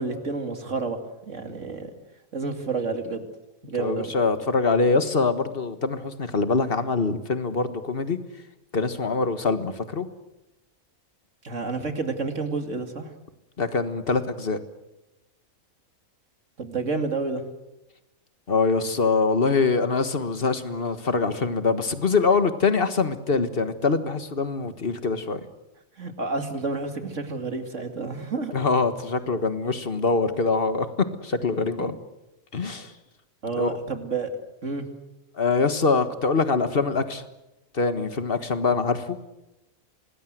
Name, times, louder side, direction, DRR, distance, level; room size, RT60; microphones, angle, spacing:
voice 1, 0.0-1.9 2.3-3.2 3.7-4.1 11.4-13.1 16.6-17.4 26.0-28.5 33.4-34.3 34.6-34.9, right 4 dB, 60° right, 6 dB, 2.7 m, -30 dB
voice 2, 3.8-8.2 8.7-10.1 13.6-14.6 18.5-25.4 28.5-30.9 31.2-31.9 32.5-32.9 33.6-33.8 35.4-37.2 37.7-39.2, left 4 dB, 45° left, 10 dB, 1.7 m, -24 dB
25.5 x 19.5 x 7.9 m, 0.95 s
omnidirectional pair, 1.5 m